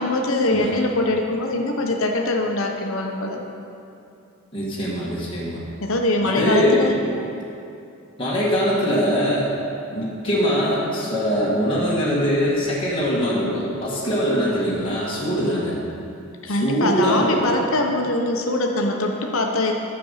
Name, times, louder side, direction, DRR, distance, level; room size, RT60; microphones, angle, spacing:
voice 1, 0.0-3.4 5.8-6.9 16.4-19.7, left 2 dB, 70° left, 2 dB, 1.0 m, -22 dB
voice 2, 4.5-5.6 6.2-6.8 8.2-9.5 9.9-15.8 16.4-17.4, equal, 25° left, -8 dB, 1.7 m, -22 dB
9.9 x 7.0 x 5.7 m, 2.6 s
head